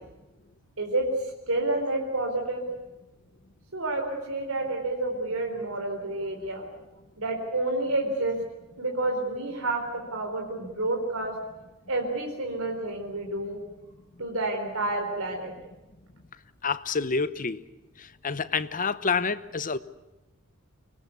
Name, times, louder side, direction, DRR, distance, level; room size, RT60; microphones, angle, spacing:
voice 1, 1.5-2.6 3.7-6.7 7.2-8.4 8.8-11.3 11.9-13.6 14.2-15.5, right 2 dB, 85° right, 2 dB, 4.1 m, -29 dB
voice 2, 16.6-17.6 18.0-19.8, left 5 dB, 40° left, 14 dB, 1.0 m, -28 dB
25.0 x 20.0 x 8.4 m, 1.0 s
head